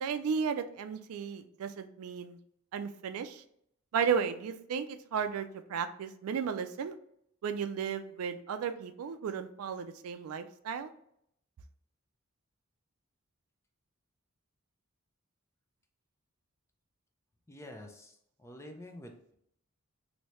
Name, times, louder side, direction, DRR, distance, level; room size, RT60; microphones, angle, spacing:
voice 1, 0.0-2.4 2.7-3.4 3.9-7.0 7.4-10.9, right 6 dB, 75° right, 9 dB, 0.3 m, -34 dB
voice 2, 17.5-19.3, left 1 dB, 15° left, 4 dB, 0.4 m, -48 dB
3.2 x 2.7 x 2.9 m, 0.70 s
head